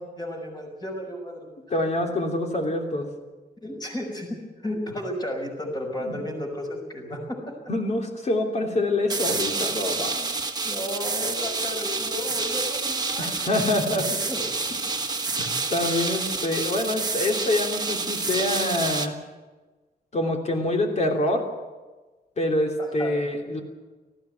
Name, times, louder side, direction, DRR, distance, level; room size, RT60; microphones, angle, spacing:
voice 1, 0.0-1.5 3.6-4.3 4.6-7.2 10.6-13.4 14.3-14.6 15.4-15.5 22.8-23.1, left 1 dB, 25° left, 1 dB, 5.9 m, -33 dB
voice 2, 1.7-3.1 6.0-6.1 7.7-10.3 13.2-14.0 14.8-15.2 15.7-19.2 20.1-21.4 22.4-23.6, left 1 dB, 45° left, 2 dB, 3.1 m, -26 dB
sound 1, 9.1-19.1, right 3 dB, 25° right, 1.3 m, -28 dB
19.0 x 15.0 x 9.3 m, 1.2 s
wide cardioid pair, 160°, 16 cm